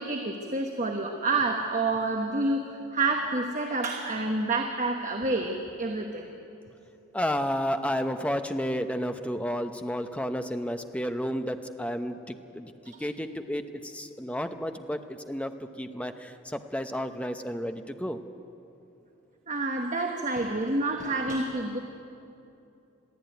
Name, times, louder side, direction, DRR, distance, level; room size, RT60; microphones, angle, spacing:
voice 1, 0.0-6.3 19.5-21.8, right 2 dB, 35° right, 3 dB, 1.2 m, -28 dB
voice 2, 7.1-12.7 13.0-18.2, equal, 5° left, 7 dB, 0.7 m, -32 dB
22.0 x 14.5 x 9.2 m, 2.8 s
head